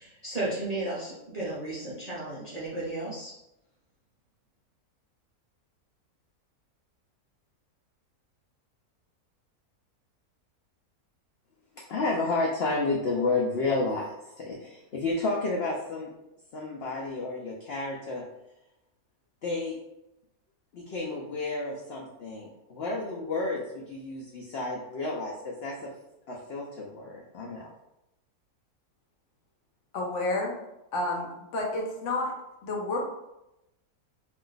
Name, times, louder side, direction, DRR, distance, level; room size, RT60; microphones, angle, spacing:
voice 1, 0.0-3.3, right 2 dB, 50° right, -8 dB, 0.4 m, -34 dB
voice 2, 11.9-16.1 16.5-18.2 19.4-19.8 20.7-25.9 26.3-27.7, left 3 dB, 75° left, -2 dB, 0.5 m, -31 dB
voice 3, 29.9-30.6 30.9-31.3 31.5-32.3 32.6-33.0, left 2 dB, 60° left, 0 dB, 0.9 m, -29 dB
2.5 x 2.4 x 3.7 m, 0.90 s
omnidirectional pair, 1.6 m